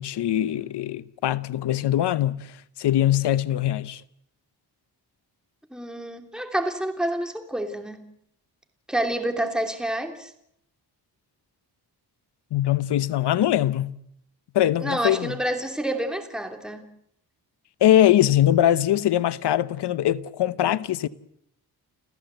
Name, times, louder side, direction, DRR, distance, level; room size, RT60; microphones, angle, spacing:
voice 1, 0.0-4.0 12.5-13.9 14.5-15.4 17.8-21.1, left 12 dB, 90° left, 0.9 m, -22 dB
voice 2, 5.7-8.1 8.9-10.3 14.8-16.8, right 1 dB, ahead, 2.9 m, -28 dB
29.5 x 15.0 x 7.9 m
cardioid pair, 95°, 40 cm